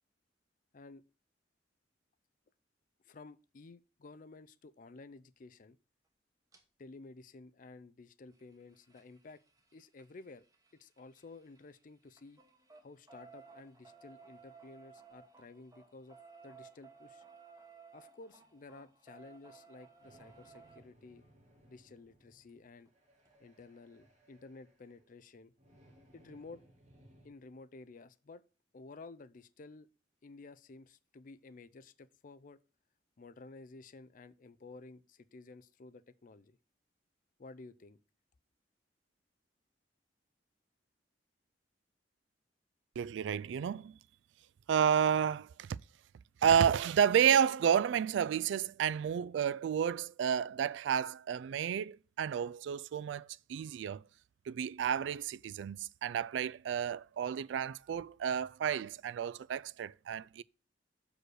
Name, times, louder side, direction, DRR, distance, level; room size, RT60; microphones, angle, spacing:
voice 1, 3.0-5.8 6.8-9.4 9.7-10.4 10.7-12.4 12.8-16.2 16.4-17.2 17.9-21.3 21.7-22.9 23.4-25.5 26.1-26.6 27.2-28.4 28.7-29.9 30.2-32.6 33.2-36.6 37.4-38.0, left 3 dB, 45° left, 0.5 m, -53 dB
sound 1, 6.5-6.6 8.3-11.8 12.1-20.8 22.5-22.6 22.9-23.0 23.3-23.4, right 5 dB, 20° right, 1.1 m, -58 dB
sound 2, 20.0-27.3, right 1 dB, 40° right, 2.0 m, -64 dB
voice 2, 43.0-44.0 44.7-45.8 46.4-54.0 54.5-60.4, right 8 dB, 80° right, 0.3 m, -31 dB
6.2 x 5.0 x 6.5 m
head